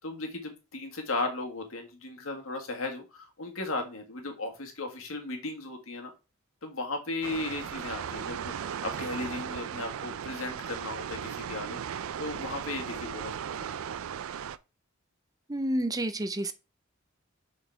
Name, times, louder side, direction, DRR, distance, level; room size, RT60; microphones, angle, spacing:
voice 1, 0.0-6.1 6.6-13.8, left 2 dB, 90° left, 1.7 m, -36 dB
sound 1, 7.2-14.6, right 8 dB, 85° right, 0.4 m, -37 dB
voice 2, 15.5-16.5, right 1 dB, 20° right, 0.5 m, -29 dB
6.5 x 4.2 x 4.5 m
head